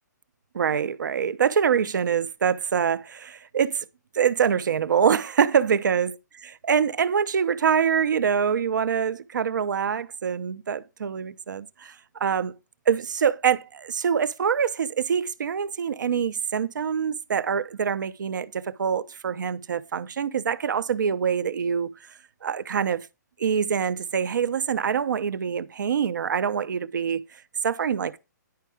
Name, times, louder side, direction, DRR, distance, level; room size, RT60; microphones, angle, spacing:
voice 1, 0.5-3.8 4.1-6.1 6.6-12.5 12.9-22.1 22.4-23.1 23.4-27.2 27.6-28.2, right 7 dB, 80° right, 0.7 m, -25 dB
10.5 x 4.6 x 4.9 m
hypercardioid pair, 165°, 10 cm